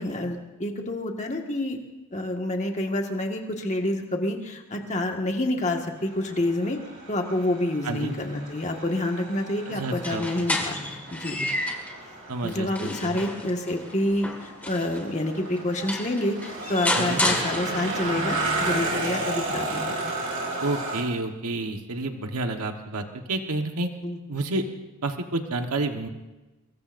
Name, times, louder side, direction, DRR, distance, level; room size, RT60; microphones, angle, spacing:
voice 1, 0.0-1.8 2.1-6.8 7.1-11.5 12.4-20.1 24.0-24.2, left 1 dB, 30° left, 2 dB, 1.7 m, -28 dB
sound 1, 6.0-21.0, right 2 dB, 55° right, 3.8 m, -33 dB
voice 2, 7.8-8.1 9.7-10.3 12.3-13.2 16.9-17.2 20.6-23.9 24.3-24.6 25.0-26.1, right 2 dB, 85° right, 5 dB, 1.3 m, -29 dB
sound 2, 9.9-12.0 12.5-15.0 15.6-15.7 15.9-18.1, left 1 dB, 5° left, 1.9 m, -30 dB
24.5 x 21.5 x 2.6 m, 1.1 s
head